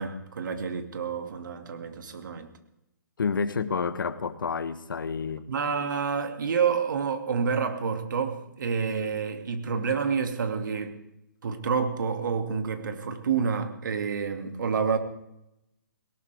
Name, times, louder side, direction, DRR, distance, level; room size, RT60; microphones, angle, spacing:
voice 1, 0.0-2.5 5.5-11.0 11.4-15.0, right 6 dB, 65° right, 2.4 m, -28 dB
voice 2, 3.2-5.5, left 5 dB, 80° left, 1.2 m, -29 dB
19.0 x 18.0 x 3.5 m
hypercardioid pair, 145°, 11 cm